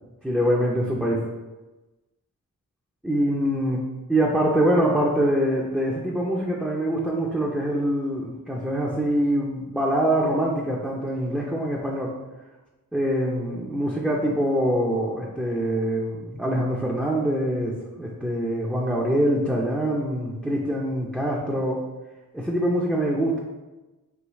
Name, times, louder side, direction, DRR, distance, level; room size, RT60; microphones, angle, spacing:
voice 1, 0.2-1.3 3.0-3.8 4.1-12.1 12.9-21.8 22.3-23.4, right 1 dB, 5° right, -3 dB, 0.6 m, -24 dB
4.7 x 3.1 x 3.1 m, 1.1 s
wide cardioid pair, 85°, 34 cm